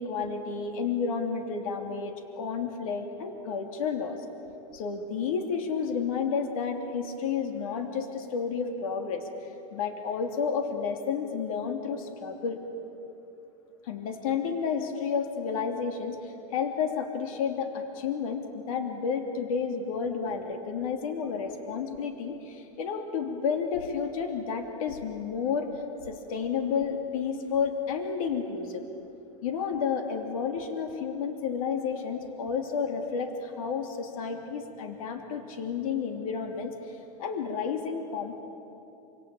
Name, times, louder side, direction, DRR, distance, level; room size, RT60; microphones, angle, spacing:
voice 1, 0.0-4.2 4.7-12.6 13.8-28.8 29.4-38.4, left 6 dB, 75° left, 4 dB, 2.9 m, -31 dB
26.0 x 26.0 x 8.9 m, 2.9 s
supercardioid pair, 150°, 18 cm